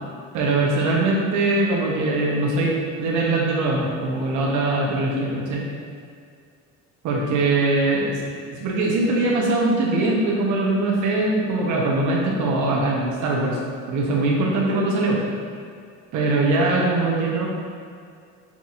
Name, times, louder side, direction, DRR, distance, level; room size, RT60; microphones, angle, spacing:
voice 1, 0.3-5.6 7.0-13.6 13.9-15.2 16.1-17.5, right 2 dB, 60° right, -3 dB, 0.9 m, -22 dB
5.9 x 2.7 x 2.5 m, 2.2 s
cardioid pair, 110°, 33 cm